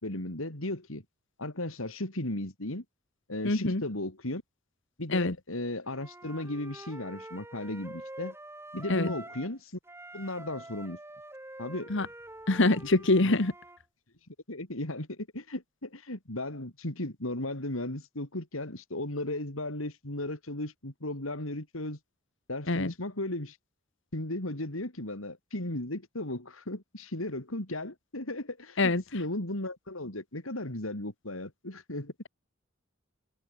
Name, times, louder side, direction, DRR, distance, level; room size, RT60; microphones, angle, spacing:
voice 1, 0.0-1.0 1.4-2.8 3.3-4.4 5.0-8.3 8.7-9.8 10.1-11.0 11.6-11.9 13.2-13.4 14.5-22.0 22.5-23.6 24.1-32.1, left 1 dB, 85° left, 4.2 m, -36 dB
voice 2, 3.4-3.8 5.1-5.3 8.9-9.1 11.9-12.1 12.5-13.5 22.7-22.9 28.8-29.0, left 2 dB, 65° left, 1.6 m, -24 dB
Wind instrument woodwind instrument, 5.9-9.5 9.8-13.8, right 1 dB, 10° right, 4.5 m, -46 dB
head